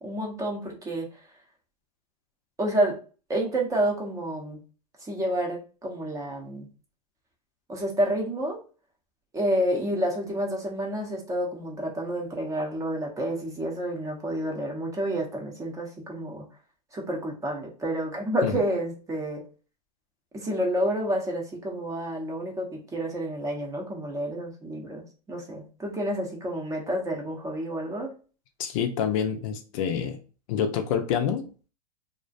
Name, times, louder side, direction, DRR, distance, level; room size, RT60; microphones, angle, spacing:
voice 1, 0.0-1.2 2.6-3.0 3.3-4.6 5.0-6.7 7.7-8.6 9.3-16.4 16.9-19.4 20.3-28.1, right 1 dB, 15° right, 0 dB, 0.6 m, -29 dB
voice 2, 28.6-30.2 30.5-31.4, left 8 dB, 55° left, 7 dB, 0.5 m, -27 dB
2.4 x 2.1 x 2.5 m, 0.36 s
hypercardioid pair, 120°, 21 cm